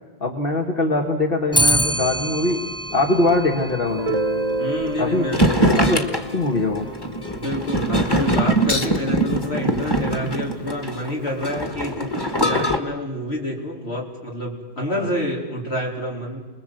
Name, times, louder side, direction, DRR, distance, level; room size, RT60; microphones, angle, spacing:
voice 1, 0.2-2.6 2.9-4.2 5.0-5.3 5.8-6.1 6.3-6.9 14.9-15.1, left 2 dB, 60° left, 2 dB, 2.0 m, -22 dB
Clock, 1.5-10.9, equal, 5° left, 0.6 m, -29 dB
Guitar, 3.9-9.4, right 2 dB, 40° right, 0.9 m, -30 dB
voice 2, 4.6-5.4 7.3-16.4, equal, 85° left, -1 dB, 4.4 m, -28 dB
sound 1, 5.3-12.8, right 1 dB, 25° left, 1.8 m, -22 dB
28.5 x 21.0 x 7.8 m, 1.3 s
omnidirectional pair, 1.1 m